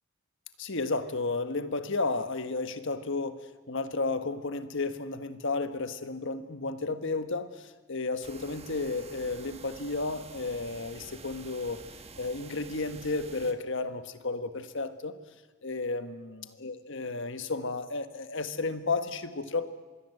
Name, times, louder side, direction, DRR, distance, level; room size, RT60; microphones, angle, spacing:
voice 1, 0.6-11.8 12.2-15.2 15.6-19.7, left 3 dB, 60° left, 10 dB, 1.4 m, -33 dB
sound 1, 8.2-13.5, right 4 dB, 30° right, 1.5 m, -48 dB
25.5 x 21.0 x 8.0 m, 1.3 s
head